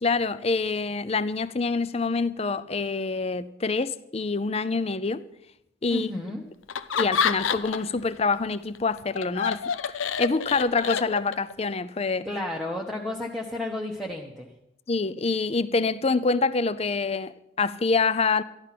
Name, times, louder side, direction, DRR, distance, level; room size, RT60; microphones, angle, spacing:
voice 1, 0.0-5.2 5.8-6.1 7.0-9.6 10.2-12.3 14.9-18.4, left 4 dB, 30° left, 0.5 m, -26 dB
voice 2, 5.9-6.4 12.2-14.5, left 1 dB, ahead, 1.0 m, -32 dB
Laughter, 6.7-8.0 8.3-11.5, left 6 dB, 75° left, 0.6 m, -28 dB
13.5 x 11.5 x 5.9 m
head